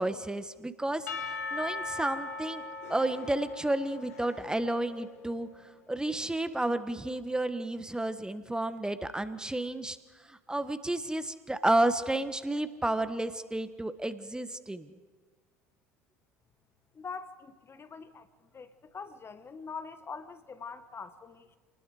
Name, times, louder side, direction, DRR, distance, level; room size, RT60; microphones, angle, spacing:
voice 1, 0.0-2.6 2.9-10.0 10.3-14.9, right 1 dB, 10° right, 11 dB, 1.3 m, -31 dB
Percussion / Church bell, 1.1-5.2, left 3 dB, 75° left, 1.6 m, -39 dB
voice 2, 16.9-18.3 18.5-21.6, left 5 dB, 30° left, 11 dB, 1.4 m, -43 dB
28.5 x 20.0 x 4.9 m, 1.4 s
hypercardioid pair, 65°, 8 cm